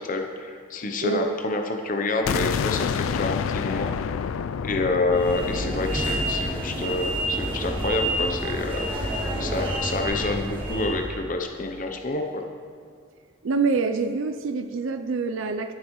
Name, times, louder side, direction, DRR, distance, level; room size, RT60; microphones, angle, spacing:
voice 1, 0.0-3.9 4.6-8.9 9.4-12.4, left 2 dB, 40° left, 4 dB, 0.7 m, -28 dB
voice 2, 1.0-1.4 13.4-15.7, right 4 dB, 70° right, 8 dB, 0.4 m, -26 dB
sound 1, 2.3-8.0, left 6 dB, 75° left, 0.3 m, -29 dB
sound 2, 5.1-11.1, right 1 dB, 25° right, 2.3 m, -28 dB
21.5 x 7.9 x 3.1 m, 2.1 s
head